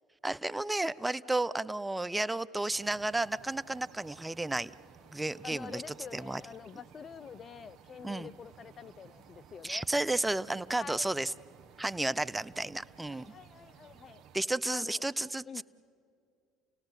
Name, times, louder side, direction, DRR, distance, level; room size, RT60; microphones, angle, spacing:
voice 1, 0.2-4.7 5.1-5.8 6.1-6.4 8.0-8.3 9.6-11.3 11.8-13.3 14.3-15.6, right 2 dB, 10° right, 17 dB, 0.6 m, -32 dB
sound 1, 2.7-14.4, right 7 dB, 60° right, 1.0 m, -57 dB
voice 2, 5.4-9.8 10.8-11.1 13.1-14.2 14.7-15.0 15.5-15.6, left 6 dB, 45° left, 18 dB, 0.6 m, -46 dB
30.0 x 18.0 x 8.2 m, 2.4 s
hypercardioid pair, 70°, 0 cm